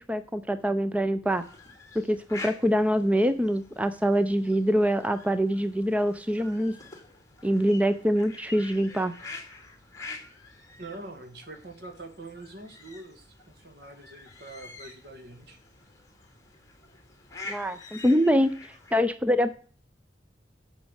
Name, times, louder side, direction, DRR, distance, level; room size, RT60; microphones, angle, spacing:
voice 1, 0.0-1.4 2.1-6.7 7.4-9.1 17.5-19.5, equal, 10° right, 11 dB, 0.5 m, -24 dB
sound 1, 1.3-19.0, left 3 dB, 20° left, 2.5 m, -47 dB
voice 2, 10.8-15.6, right 2 dB, 65° right, 7 dB, 1.9 m, -44 dB
10.5 x 7.1 x 6.4 m, 0.43 s
head